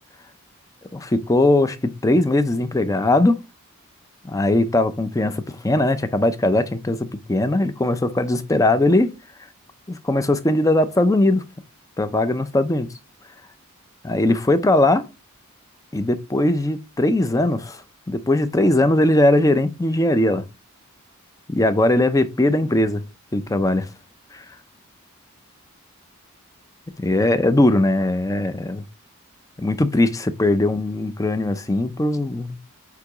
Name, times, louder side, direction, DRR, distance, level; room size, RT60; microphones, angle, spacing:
voice 1, 0.9-3.4 4.2-9.1 9.9-11.4 12.0-12.9 14.0-15.0 15.9-17.8 18.1-20.4 21.5-23.0 23.3-23.9 24.3-24.4 27.0-28.8 29.6-32.6, left 1 dB, 15° left, 0.5 m, -20 dB
8.3 x 2.9 x 4.8 m
head